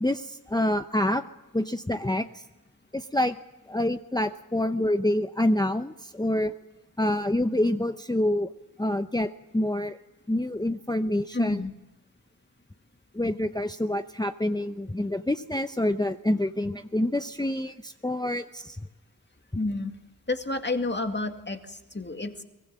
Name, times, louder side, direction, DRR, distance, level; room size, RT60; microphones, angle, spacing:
voice 1, 0.0-1.2 1.5-2.4 2.9-3.4 3.7-6.5 7.0-8.5 8.8-10.0 10.3-11.6 13.1-18.8, left 1 dB, 10° left, 8 dB, 0.8 m, -27 dB
voice 2, 11.3-11.7 19.5-19.9 20.3-22.4, left 2 dB, 30° left, 6 dB, 2.2 m, -30 dB
23.5 x 18.5 x 7.6 m, 1.0 s
wide cardioid pair, 60°, 36 cm